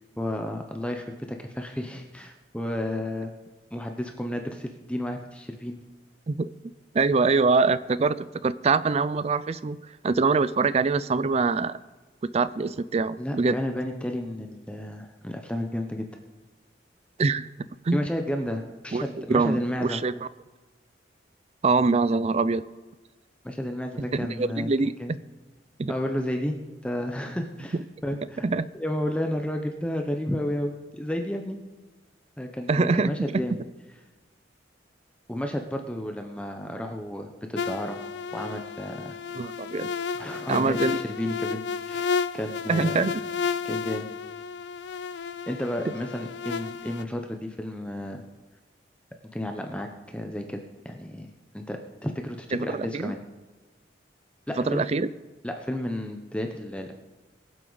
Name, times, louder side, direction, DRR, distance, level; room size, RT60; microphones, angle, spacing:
voice 1, 0.2-3.3 3.7-5.8 13.2-16.1 17.9-20.0 23.4-24.7 25.0-25.1 25.9-26.6 26.8-27.8 28.0-28.5 28.7-31.6 32.4-33.6 35.3-38.0 38.3-39.2 40.1-43.0 43.6-44.1 45.5-48.2 49.3-51.3 51.5-53.2 54.5-54.8 55.4-56.9, left 1 dB, 5° left, 4 dB, 0.7 m, -32 dB
voice 2, 6.9-9.8 10.0-11.8 12.3-13.6 17.2-17.5 17.8-18.1 18.9-19.0 19.3-20.3 21.6-22.6 24.1-24.9 25.8-25.9 28.4-28.7 32.7-33.1 39.3-39.9 40.5-41.0 42.7-43.2 52.5-53.1 54.7-55.1, right 4 dB, 35° right, 16 dB, 0.4 m, -24 dB
sound 1, 37.6-47.0, left 6 dB, 70° left, 0.4 m, -32 dB
22.5 x 7.8 x 4.0 m, 1.2 s
head